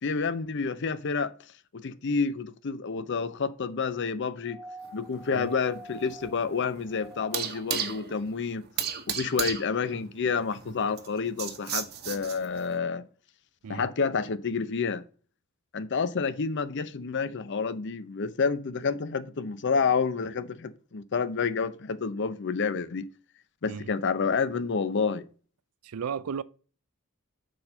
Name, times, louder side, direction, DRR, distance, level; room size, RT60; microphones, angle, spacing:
voice 1, 0.0-1.3 1.7-4.6 4.9-8.6 9.1-13.0 13.7-15.0 15.7-23.1 23.6-25.2, left 5 dB, 55° left, 0.6 m, -29 dB
sound 1, 4.4-7.7 9.1-9.2, right 1 dB, 5° right, 1.2 m, -47 dB
sound 2, 4.8-12.7, right 8 dB, 50° right, 1.0 m, -36 dB
voice 2, 25.8-26.4, right 6 dB, 85° right, 0.5 m, -34 dB
6.4 x 4.3 x 6.5 m
head